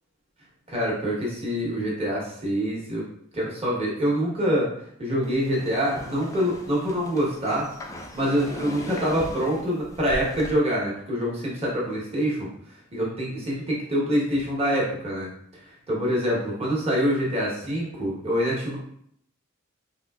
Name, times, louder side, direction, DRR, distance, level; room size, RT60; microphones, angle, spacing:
voice 1, 0.7-3.1 3.3-4.7 5.0-7.7 8.1-12.5 12.9-15.3 15.9-18.8, equal, 30° right, -4 dB, 1.0 m, -25 dB
sound 1, 5.2-10.5, left 1 dB, 15° left, 0.3 m, -39 dB
3.7 x 2.7 x 2.3 m, 0.69 s
head